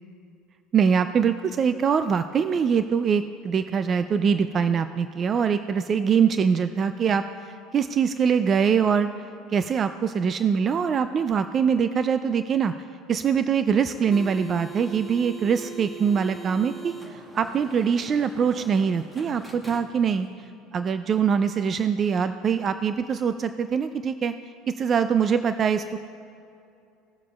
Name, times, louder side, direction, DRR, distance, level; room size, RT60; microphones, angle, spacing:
voice 1, 0.7-7.2 7.7-9.1 9.5-12.7 13.1-20.3 20.7-24.3 24.7-26.0, right 7 dB, 40° right, 10 dB, 0.4 m, -23 dB
sound 1, 13.9-20.3, right 3 dB, 15° right, 1.1 m, -41 dB
17.5 x 7.1 x 2.4 m, 2.6 s
supercardioid pair, 100°, 0 cm